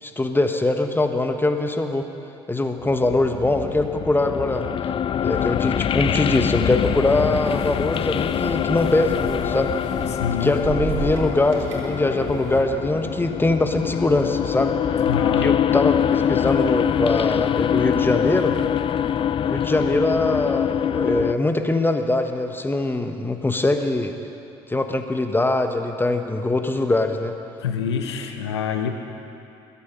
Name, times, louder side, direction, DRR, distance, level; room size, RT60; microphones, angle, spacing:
voice 1, 0.0-2.1 2.5-4.7 5.2-9.7 10.4-14.7 15.4-18.5 19.4-24.1 24.7-27.3, left 2 dB, 15° left, 6 dB, 1.1 m, -22 dB
sound 1, 2.8-21.3, left 9 dB, 40° left, 0.4 m, -24 dB
sound 2, 6.9-12.6, right 4 dB, 65° right, 3.0 m, -35 dB
voice 2, 10.1-10.6 15.0-15.5 27.6-28.9, left 7 dB, 90° left, 5 dB, 1.0 m, -26 dB
22.0 x 8.5 x 5.6 m, 2.7 s
hypercardioid pair, 55°, 14 cm